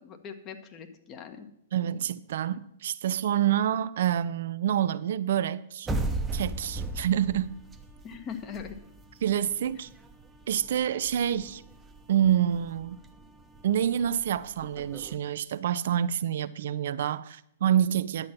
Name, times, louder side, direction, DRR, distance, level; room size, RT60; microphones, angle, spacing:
voice 1, 0.0-1.5 8.0-8.8, left 7 dB, 30° left, 1.3 m, -41 dB
voice 2, 1.7-5.9 6.3-7.5 9.2-9.9 10.5-11.6 12.1-13.0 13.6-18.3, right 10 dB, 60° right, 0.4 m, -27 dB
sound 1, 5.9-15.2, right 2 dB, 15° right, 0.9 m, -38 dB
10.5 x 7.4 x 6.0 m
figure-of-eight pair, 110°, 0 cm